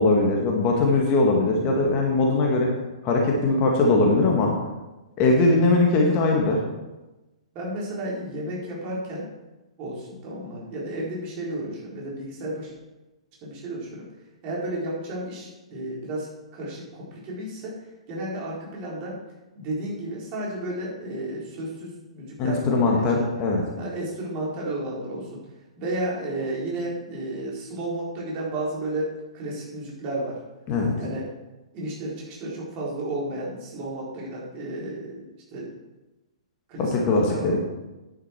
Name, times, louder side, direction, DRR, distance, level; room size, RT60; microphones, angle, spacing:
voice 1, 0.0-2.7 3.0-4.5 5.2-6.6 22.4-23.6 30.7-30.9 36.8-37.6, left 3 dB, 30° left, 0 dB, 1.9 m, -20 dB
voice 2, 7.5-9.3 9.8-12.7 13.4-14.1 14.4-17.8 18.1-19.2 19.6-23.3 23.8-25.4 25.8-30.4 31.0-31.3 31.7-35.7 36.7-37.6, right 1 dB, 30° right, -4 dB, 4.2 m, -32 dB
10.0 x 9.7 x 4.5 m, 1.1 s
figure-of-eight pair, 115°, 3 cm